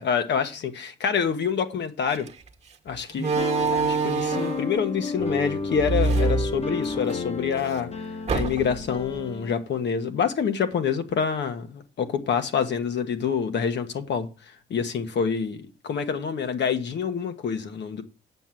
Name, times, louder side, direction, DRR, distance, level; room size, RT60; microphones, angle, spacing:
voice 1, 0.0-2.3 2.8-3.4 3.7-7.9 8.3-14.3 14.7-18.0, left 6 dB, 60° left, 1.4 m, -27 dB
Slam, 2.1-2.3 3.1-4.7 5.7-7.2 7.5-7.6 8.3-8.9, right 4 dB, 35° right, 1.3 m, -25 dB
sound 1, 3.3-9.5, left 3 dB, 30° left, 1.1 m, -31 dB
7.8 x 6.4 x 7.6 m
cardioid pair, 90°, 20 cm